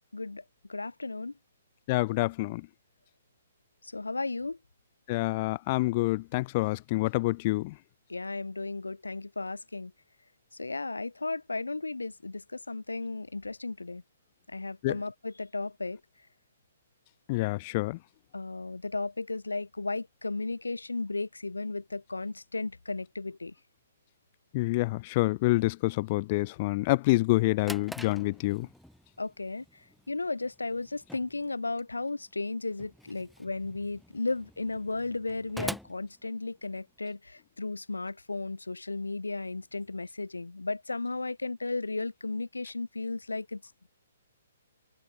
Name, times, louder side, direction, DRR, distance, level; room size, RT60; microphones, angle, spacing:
voice 1, 0.1-0.4 0.7-1.3 3.9-4.6 8.1-9.9 10.6-14.0 14.5-16.0 18.3-23.5 29.2-29.6 30.1-43.6, left 3 dB, 80° left, 3.1 m, -34 dB
voice 2, 1.9-2.7 5.1-7.7 14.8-15.0 17.3-18.0 24.5-28.7, left 21 dB, 35° left, 0.7 m, -27 dB
Drawer open or close, 27.6-37.0, equal, ahead, 5.7 m, -46 dB
figure-of-eight pair, 125°, 0 cm